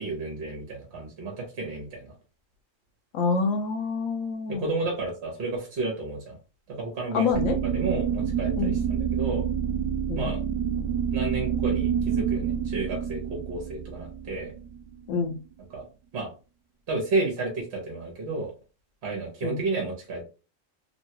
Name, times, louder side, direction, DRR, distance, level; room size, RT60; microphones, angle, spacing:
voice 1, 0.0-2.1 4.5-6.4 6.7-7.3 7.7-9.5 10.1-10.4 11.1-14.5 15.7-15.8 16.1-16.3 16.9-18.5 19.0-20.2, right 3 dB, 60° right, 0 dB, 1.1 m, -31 dB
voice 2, 3.1-4.7 7.1-7.6 8.6-8.7 10.1-10.3 15.1-15.4 19.4-19.6, left 4 dB, 85° left, 6 dB, 1.0 m, -26 dB
sound 1, 7.3-15.2, right 8 dB, 90° right, 1.0 m, -28 dB
3.1 x 2.2 x 2.8 m, 0.33 s
omnidirectional pair, 1.4 m